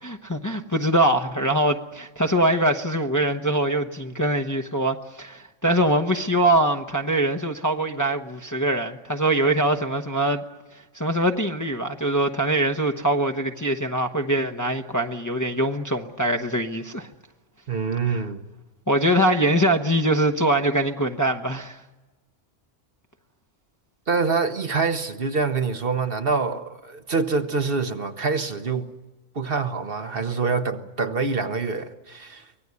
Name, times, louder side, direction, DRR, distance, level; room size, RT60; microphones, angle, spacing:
voice 1, 0.0-10.4 10.9-17.1 18.0-18.2 18.9-21.8, right 1 dB, 15° left, 0.9 m, -23 dB
voice 2, 17.7-18.4 24.1-28.9 29.3-32.5, right 4 dB, 50° right, 1.3 m, -25 dB
24.5 x 18.0 x 9.7 m
omnidirectional pair, 1.3 m